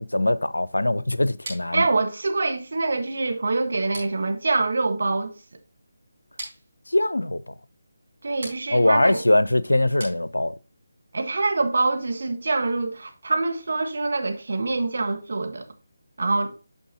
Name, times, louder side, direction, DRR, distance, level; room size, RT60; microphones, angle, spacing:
voice 1, 0.0-1.9 6.9-7.5 8.7-10.5, left 1 dB, 90° left, 0.5 m, -22 dB
sound 1, 1.4-10.8, right 2 dB, 45° right, 4.5 m, -44 dB
voice 2, 1.7-5.3 8.2-9.2 11.1-15.7 16.2-16.5, right 3 dB, 60° right, 1.4 m, -25 dB
9.0 x 6.5 x 2.8 m
figure-of-eight pair, 155°, 0 cm